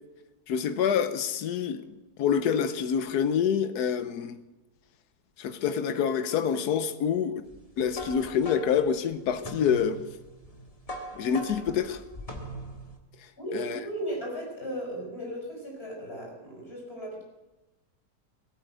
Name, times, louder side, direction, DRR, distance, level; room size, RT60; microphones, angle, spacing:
voice 1, 0.5-1.9 2.2-4.4 5.4-7.4 7.8-10.0 11.2-12.0 13.5-13.8, left 7 dB, 85° left, 1.3 m, -27 dB
sound 1, 7.5-13.0, right 1 dB, 25° left, 1.7 m, -41 dB
voice 2, 13.4-17.2, right 1 dB, 40° left, 6.3 m, -36 dB
16.5 x 9.0 x 7.8 m
omnidirectional pair, 1.7 m